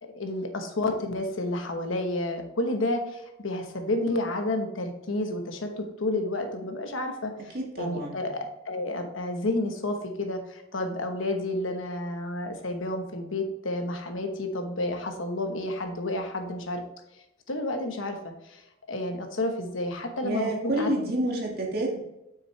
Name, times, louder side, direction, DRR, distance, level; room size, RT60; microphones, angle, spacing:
voice 1, 0.0-16.8 17.5-20.9, left 2 dB, 85° left, 5 dB, 1.1 m, -30 dB
voice 2, 7.5-8.2 20.2-22.0, right 1 dB, 50° right, -1 dB, 1.9 m, -28 dB
7.4 x 6.3 x 3.2 m, 0.89 s
head